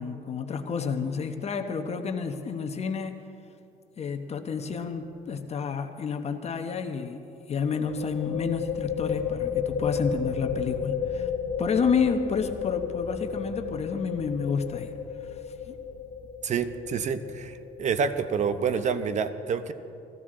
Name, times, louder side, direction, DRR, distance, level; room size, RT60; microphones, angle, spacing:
voice 1, 0.0-3.1 4.0-7.2 7.5-11.3 11.6-14.9 15.2-15.4 15.7-15.8, left 5 dB, 40° left, 6 dB, 1.0 m, -30 dB
sound 1, 4.6-4.9 5.1-5.2 7.7-19.1, left 7 dB, 75° left, 1.1 m, -33 dB
voice 2, 16.4-19.7, right 6 dB, 45° right, 11 dB, 0.9 m, -28 dB
20.0 x 15.0 x 3.8 m, 2.7 s
cardioid pair, 110°, 17 cm